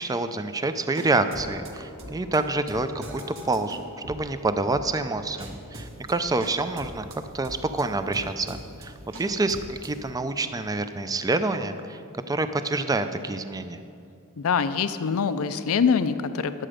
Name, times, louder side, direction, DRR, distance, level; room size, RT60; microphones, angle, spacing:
voice 1, 0.0-7.1 7.3-12.0 12.3-13.8, right 2 dB, 15° right, 10 dB, 0.4 m, -27 dB
sound 1, 0.8-10.1, right 1 dB, 60° right, 1.3 m, -43 dB
voice 2, 14.4-16.5, left 6 dB, 65° left, 12 dB, 0.5 m, -24 dB
11.0 x 7.7 x 5.0 m, 2.6 s
head